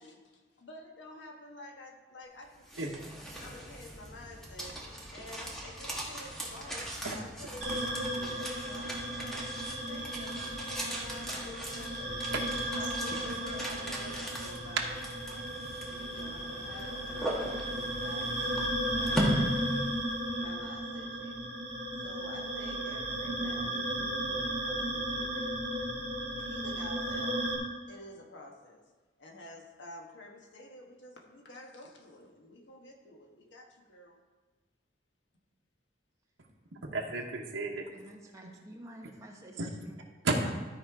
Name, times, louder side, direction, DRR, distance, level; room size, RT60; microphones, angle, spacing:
voice 1, 0.0-3.0 3.4-4.8 5.1-9.6 9.9-12.2 12.7-14.9 15.3-15.5 15.8-19.9 20.4-21.6 21.9-25.5 26.4-27.5 27.9-28.8 29.2-34.2, left 1 dB, 70° left, 1 dB, 1.3 m, -50 dB
sound 1, 2.4-20.4, right 1 dB, ahead, 1.3 m, -39 dB
sound 2, 7.6-27.6, right 1 dB, 35° right, 2.4 m, -35 dB
voice 2, 12.3-12.8 36.8-37.9 39.6-39.7 40.2-40.5, right 2 dB, 85° right, -1 dB, 1.0 m, -33 dB
voice 3, 37.9-40.0 40.4-40.5, right 1 dB, 15° right, -1 dB, 1.2 m, -50 dB
13.0 x 4.4 x 4.8 m, 1.3 s
head